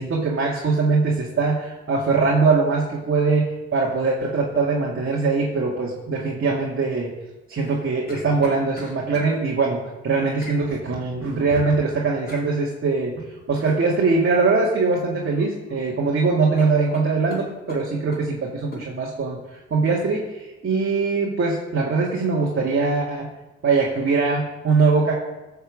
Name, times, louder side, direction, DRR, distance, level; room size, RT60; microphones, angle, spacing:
voice 1, 0.0-7.1 7.5-13.2 13.5-23.3 23.6-25.1, right 4 dB, 45° right, -2 dB, 2.2 m, -22 dB
sound 1, 7.6-9.3 10.4-10.6 12.3-12.5 14.5-14.8 15.1-15.8 16.1-16.2 16.6-18.3 18.7-18.9, left 1 dB, 30° left, 3.6 m, -39 dB
15.0 x 5.8 x 7.4 m, 1.1 s
cardioid pair, 90°, 30 cm